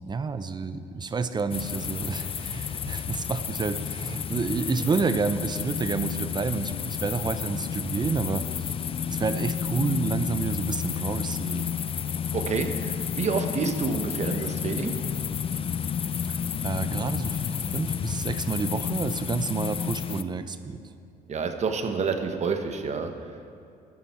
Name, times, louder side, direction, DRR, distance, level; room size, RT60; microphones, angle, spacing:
voice 1, 0.0-8.7 9.1-11.7 16.6-20.8, right 4 dB, 25° right, 11 dB, 0.7 m, -29 dB
sound 1, 1.5-20.2, left 7 dB, 35° left, 0.4 m, -31 dB
voice 2, 12.3-15.0 20.1-20.2 21.3-23.1, right 5 dB, 40° right, 6 dB, 1.2 m, -28 dB
14.5 x 11.0 x 4.4 m, 2.6 s
cardioid pair, 110°, 17 cm